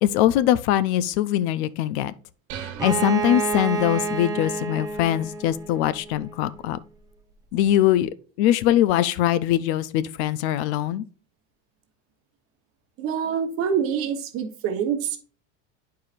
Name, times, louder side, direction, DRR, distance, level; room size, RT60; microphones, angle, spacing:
voice 1, 0.0-2.1 2.6-6.8 7.5-11.1, left 12 dB, 65° left, 0.5 m, -22 dB
sound 1, 2.5-4.1, right 9 dB, 65° right, 1.3 m, -40 dB
Bowed string instrument, 2.8-6.5, right 5 dB, 10° right, 0.4 m, -29 dB
voice 2, 13.0-15.2, right 7 dB, 40° right, 1.1 m, -26 dB
10.0 x 4.7 x 2.5 m
cardioid pair, 165°, 35 cm